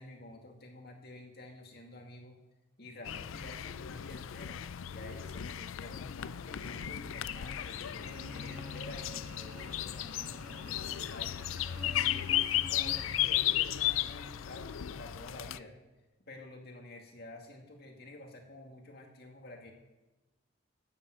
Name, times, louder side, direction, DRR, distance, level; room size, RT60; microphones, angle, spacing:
voice 1, 0.0-2.4 2.8-4.6 4.9-12.3 12.7-15.8 16.3-19.7, left 1 dB, 50° left, 2 dB, 2.3 m, -49 dB
sound 1, 3.0-15.6, left 12 dB, 90° left, 0.4 m, -35 dB
Cricket / Buzz, 7.2-13.4, right 1 dB, 10° right, 2.8 m, -51 dB
13.0 x 9.0 x 7.9 m, 1.1 s
head